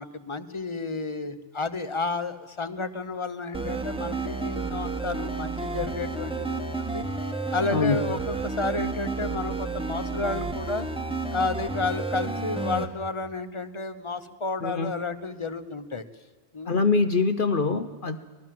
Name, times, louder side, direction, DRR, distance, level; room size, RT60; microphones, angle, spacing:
voice 1, 0.0-7.1 7.5-10.9 11.3-16.1 16.5-16.8, left 3 dB, 30° left, 11 dB, 1.0 m, -31 dB
sound 1, 3.5-12.9, right 3 dB, 5° right, 1.5 m, -31 dB
voice 2, 14.6-14.9 16.7-18.2, left 4 dB, 55° left, 10 dB, 1.0 m, -24 dB
24.5 x 19.0 x 7.7 m, 1.3 s
omnidirectional pair, 1.1 m